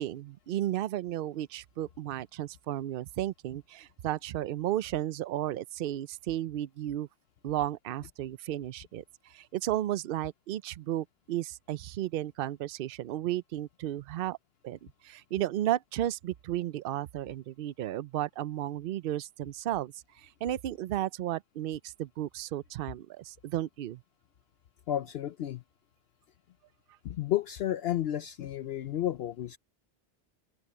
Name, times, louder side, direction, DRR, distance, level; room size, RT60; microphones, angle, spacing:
voice 1, 0.0-7.1 7.4-14.4 14.6-24.0, right 13 dB, 60° right, 0.7 m, -34 dB
voice 2, 24.9-25.6 27.0-29.6, left 12 dB, 65° left, 0.8 m, -32 dB
open air
omnidirectional pair, 1.2 m